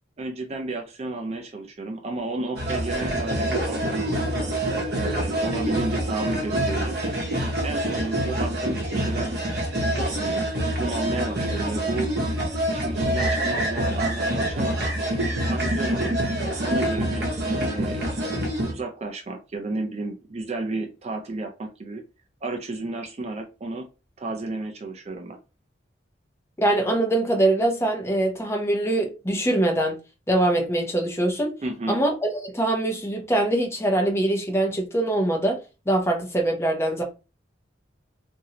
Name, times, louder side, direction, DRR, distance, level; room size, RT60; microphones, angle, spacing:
voice 1, 0.2-4.3 4.9-7.0 7.6-9.4 9.9-10.5 10.8-12.1 12.7-14.9 15.5-16.1 16.6-18.1 18.6-22.0 22.4-23.9 24.2-25.4 31.6-32.0, right 2 dB, 35° right, 0.4 m, -32 dB
sound 1, 2.6-18.7, right 1 dB, 55° right, 0.9 m, -26 dB
voice 2, 26.6-30.0 30.3-31.5 31.9-35.6 35.9-37.0, right 1 dB, 15° left, 0.7 m, -23 dB
3.0 x 2.6 x 2.8 m
head